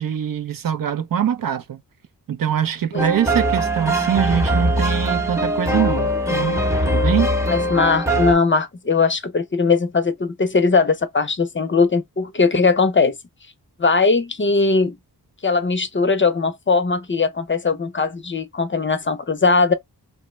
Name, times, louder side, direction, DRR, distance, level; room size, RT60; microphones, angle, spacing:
voice 1, 0.0-1.8 2.3-7.3, right 9 dB, 55° right, 0.5 m, -23 dB
sound 1, 3.0-8.3, right 1 dB, 5° right, 0.8 m, -21 dB
voice 2, 7.5-13.1 13.8-15.0 15.4-19.7, left 4 dB, 30° left, 0.6 m, -19 dB
3.0 x 2.1 x 3.1 m
cardioid pair, 60°, 40 cm